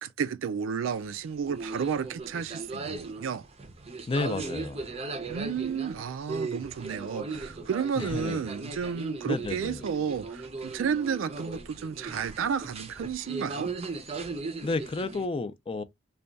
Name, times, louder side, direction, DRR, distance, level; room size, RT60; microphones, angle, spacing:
voice 1, 0.0-3.4 5.3-13.7, right 7 dB, 85° right, 0.4 m, -32 dB
sound 1, 0.8-15.3, right 3 dB, 30° right, 0.5 m, -38 dB
voice 2, 4.1-4.8 8.0-8.5 9.3-9.8 14.6-15.8, left 3 dB, 30° left, 0.4 m, -31 dB
3.3 x 2.3 x 3.8 m
head